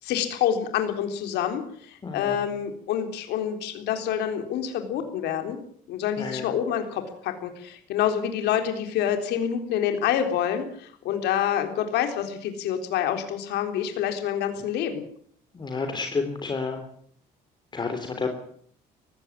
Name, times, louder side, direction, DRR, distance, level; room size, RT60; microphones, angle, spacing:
voice 1, 0.0-5.6 5.9-15.0, left 9 dB, 80° left, 6 dB, 3.7 m, -27 dB
voice 2, 2.0-2.4 6.2-6.5 15.5-16.8 17.7-18.3, left 4 dB, 25° left, 5 dB, 3.4 m, -30 dB
19.5 x 16.0 x 9.9 m, 0.62 s
cardioid pair, 110°, 17 cm